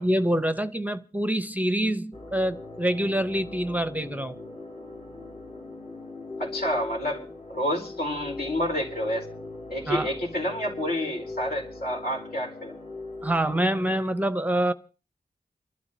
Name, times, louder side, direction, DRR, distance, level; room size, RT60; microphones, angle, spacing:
voice 1, 0.0-4.4 9.9-10.1 13.2-14.7, right 1 dB, 10° right, 0.7 m, -26 dB
sound 1, 2.1-14.0, left 2 dB, 45° left, 2.4 m, -40 dB
voice 2, 6.4-9.3 9.7-12.8, equal, 75° left, 4.4 m, -29 dB
28.5 x 12.0 x 2.8 m
wide cardioid pair, 75°, 16 cm